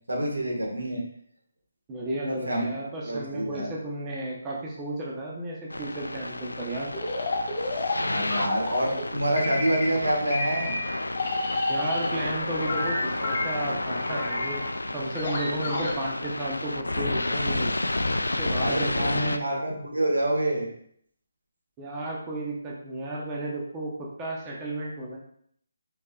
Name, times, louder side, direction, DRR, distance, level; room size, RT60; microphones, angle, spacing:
voice 1, 0.1-1.0 2.3-2.6 3.0-3.7 8.0-10.8 18.6-20.7, right 1 dB, 85° right, -1 dB, 1.6 m, -27 dB
voice 2, 1.9-6.9 11.7-14.6 14.9-17.7 18.2-19.5 21.8-23.9 24.2-25.2, right 1 dB, 20° right, -3 dB, 0.9 m, -33 dB
sound 1, 5.7-19.4, left 2 dB, 90° left, 0.3 m, -31 dB
sound 2, 6.9-9.1 9.4-10.0 10.3-12.2 12.5-15.9, left 2 dB, 40° left, 1.7 m, -30 dB
4.5 x 4.4 x 2.4 m, 0.66 s
figure-of-eight pair, 150°, 0 cm